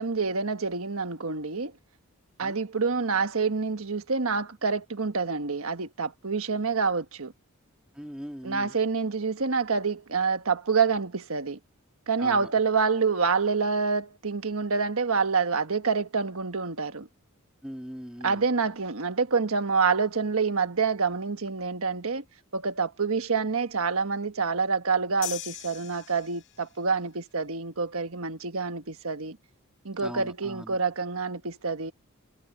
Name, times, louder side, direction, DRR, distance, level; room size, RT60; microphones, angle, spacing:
voice 1, 0.0-1.7 2.4-7.3 8.4-11.6 12.1-17.1 18.2-22.2 22.5-29.4 29.8-31.9, right 5 dB, 65° right, 1.4 m, -27 dB
voice 2, 7.9-8.7 12.2-12.5 17.6-18.4 30.0-30.8, equal, 5° right, 2.9 m, -40 dB
sound 1, 25.2-26.8, left 15 dB, 55° left, 4.8 m, -39 dB
head